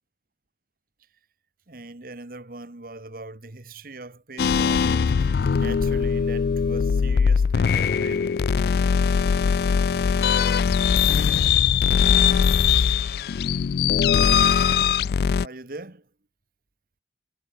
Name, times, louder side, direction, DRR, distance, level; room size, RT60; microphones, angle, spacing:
voice 1, 1.7-8.4 15.4-16.1, right 2 dB, 50° right, 1.3 m, -41 dB
sound 1, 4.4-15.5, left 7 dB, 55° left, 0.3 m, -21 dB
head